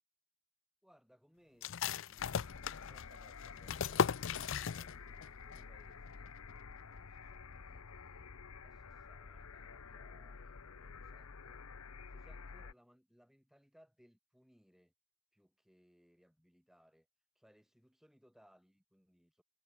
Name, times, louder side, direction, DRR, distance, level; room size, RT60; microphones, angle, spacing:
voice 1, 0.8-6.3 6.8-8.3 8.6-11.6 12.1-14.9 15.3-17.1 17.4-19.4, equal, ahead, 3.8 m, -68 dB
sound 1, 1.6-5.3 5.5-5.6 6.1-6.5, left 7 dB, 60° left, 0.5 m, -37 dB
sound 2, 2.2-12.7, left 5 dB, 75° left, 0.9 m, -51 dB
head